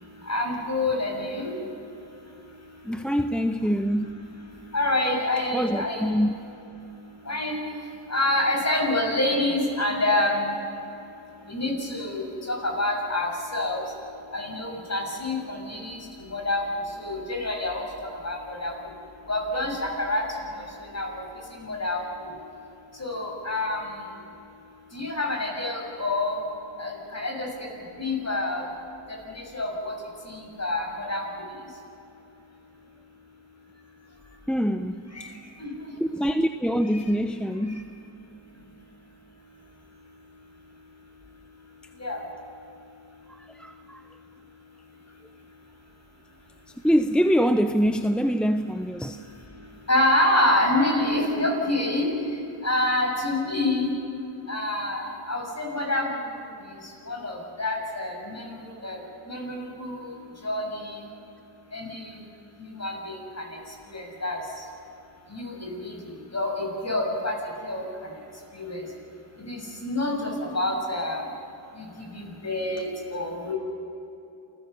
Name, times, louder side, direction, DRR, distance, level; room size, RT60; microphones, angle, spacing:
voice 1, 0.3-1.5 4.7-6.1 7.3-7.6 8.1-10.5 11.5-13.8 14.3-16.6 17.0-17.8 18.2-18.7 19.3-20.2 20.5-20.6 20.9-21.2 21.6-22.0 23.0-23.9 24.9-26.4 26.8-27.5 28.0-28.6 29.5-29.9 30.3-31.2 35.1-35.3 35.6-35.7 42.0-42.2 49.9-52.1 52.6-53.9 54.5-56.1 57.1-59.0 59.3-60.2 60.4-61.0 61.7-62.1 62.8-63.4 63.9-64.4 65.3-65.9 66.3-67.3 67.6-67.8 68.5-68.8 69.4-71.2 71.8-71.9 72.1-73.5, left 1 dB, 35° left, 1 dB, 6.6 m, -27 dB
voice 2, 2.8-4.2 5.5-6.3 34.5-35.3 36.0-37.9 43.5-44.0 46.8-49.2, equal, ahead, 8 dB, 0.8 m, -24 dB
28.0 x 15.5 x 6.9 m, 2.8 s
cardioid pair, 50°, 46 cm